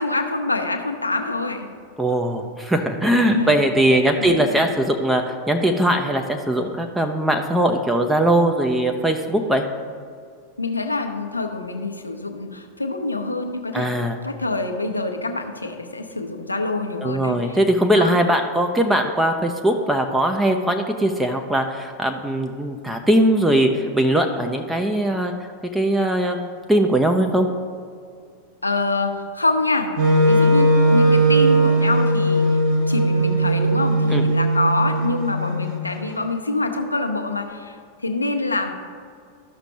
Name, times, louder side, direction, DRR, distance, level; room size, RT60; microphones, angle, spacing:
voice 1, 0.0-1.7 3.3-3.6 4.2-4.6 10.6-13.9 14.2-17.6 17.9-18.2 28.6-29.9 30.3-32.6 32.9-38.7, left 2 dB, 80° left, 5 dB, 0.7 m, -25 dB
voice 2, 2.0-9.6 13.7-14.2 17.0-25.3 25.7-27.5 34.1-34.2, right 1 dB, 5° right, 4 dB, 0.5 m, -20 dB
Wind instrument woodwind instrument, 30.0-36.0, right 1 dB, 50° right, 1.8 m, -18 dB
13.0 x 6.0 x 2.8 m, 2.2 s
figure-of-eight pair, 90°, 0 cm